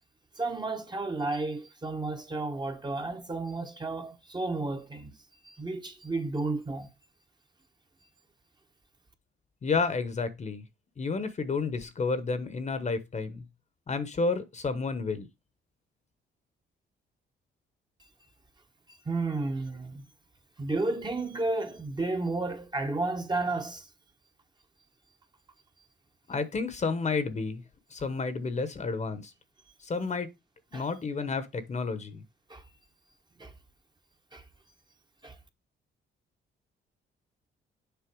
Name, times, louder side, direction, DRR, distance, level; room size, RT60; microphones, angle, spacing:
voice 1, 0.4-5.2 5.4-6.9 18.9-20.1 20.6-23.9 30.7-30.8 32.5-32.6 33.4-33.5 34.3-34.4 35.2-35.4, right 3 dB, 20° right, 1.1 m, -32 dB
voice 2, 9.6-10.7 11.0-13.4 13.9-15.3 26.3-27.6 27.9-29.3 29.8-30.3 30.7-32.2, left 4 dB, 35° left, 1.0 m, -31 dB
7.0 x 4.4 x 4.6 m
cardioid pair, 90°, 20 cm